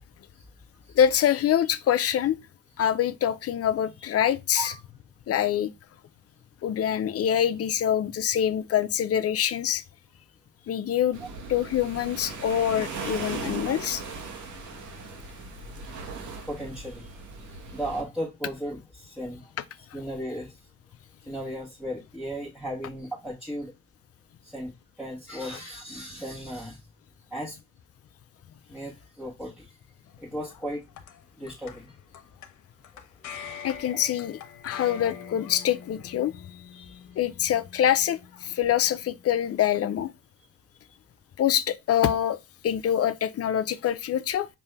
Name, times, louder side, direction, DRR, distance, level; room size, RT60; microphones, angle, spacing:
voice 1, 1.0-2.4 2.8-4.7 5.3-5.7 6.6-9.8 10.7-11.2 11.5-14.0 33.6-34.4 34.6-36.3 37.2-40.1 41.4-42.4 42.6-44.5, left 10 dB, 50° left, 0.5 m, -25 dB
sound 1, 11.1-18.0, right 4 dB, 75° right, 1.4 m, -38 dB
voice 2, 16.5-17.1 17.7-19.4 19.9-20.5 21.3-23.7 24.4-24.7 25.0-26.8 27.3-27.5 28.7-29.7 30.2-30.8 31.4-31.9 36.7-37.0, equal, ahead, 1.4 m, -35 dB
sound 2, 30.0-40.1, left 8 dB, 75° left, 0.9 m, -45 dB
5.3 x 2.7 x 3.3 m
cardioid pair, 90°, 30 cm